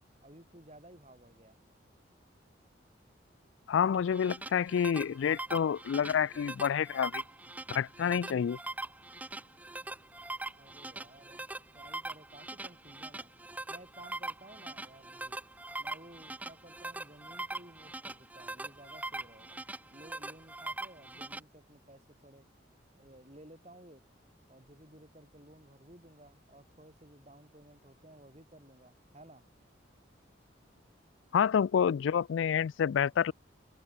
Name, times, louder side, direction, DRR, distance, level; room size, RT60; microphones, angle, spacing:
voice 1, 0.2-1.6 10.6-11.5 11.7-13.3 13.7-15.4 15.8-22.4 23.0-24.0 24.5-29.5, right 1 dB, 35° right, 4.9 m, -55 dB
voice 2, 3.7-7.2 7.7-8.6 31.3-33.3, left 7 dB, 80° left, 0.3 m, -28 dB
sound 1, 3.9-21.4, right 2 dB, 10° right, 0.4 m, -42 dB
head